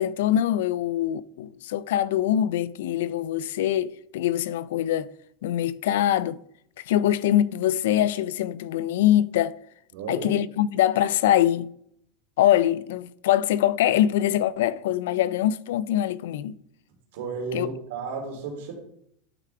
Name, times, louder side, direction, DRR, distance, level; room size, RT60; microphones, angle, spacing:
voice 1, 0.0-5.1 5.4-6.4 6.9-9.6 10.1-11.7 12.4-16.6 17.5-17.7, left 12 dB, 80° left, 0.4 m, -23 dB
voice 2, 9.9-10.3 17.1-18.7, right 5 dB, 80° right, 2.9 m, -33 dB
11.5 x 4.8 x 3.4 m
supercardioid pair, 135°, 0 cm